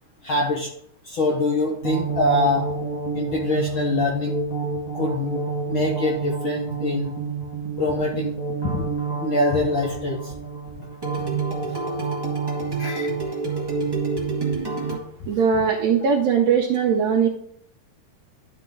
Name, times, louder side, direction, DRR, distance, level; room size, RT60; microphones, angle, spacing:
voice 1, 0.2-0.7 1.0-2.6 3.1-4.3 4.9-5.4 5.7-7.1 7.8-8.3 8.7-8.9 9.2-10.2 12.8-13.1 15.5-15.6, left 2 dB, 60° left, -2 dB, 1.4 m, -24 dB
sound 1, 1.8-15.0, right 4 dB, 40° right, 0.3 m, -28 dB
voice 2, 15.3-17.3, right 6 dB, 75° right, 0 dB, 1.7 m, -20 dB
11.5 x 4.0 x 3.6 m, 0.67 s
omnidirectional pair, 3.4 m